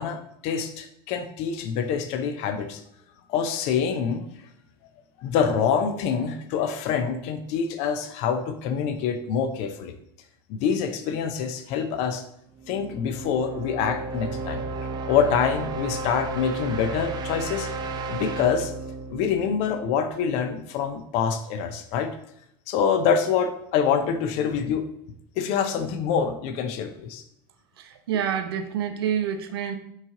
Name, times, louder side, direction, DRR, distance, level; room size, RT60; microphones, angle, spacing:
voice 1, 0.0-2.8 3.3-4.3 5.2-9.9 10.5-12.2 12.7-14.6 15.1-17.7 18.1-18.7 19.1-22.1 22.7-24.9 25.4-27.2, left 7 dB, 60° left, 9 dB, 0.5 m, -26 dB
sound 1, 12.6-20.4, right 3 dB, 35° right, 0.5 m, -33 dB
voice 2, 27.8-29.8, right 8 dB, 85° right, 7 dB, 0.5 m, -28 dB
4.0 x 3.2 x 3.6 m, 0.74 s
hypercardioid pair, 90°, 12 cm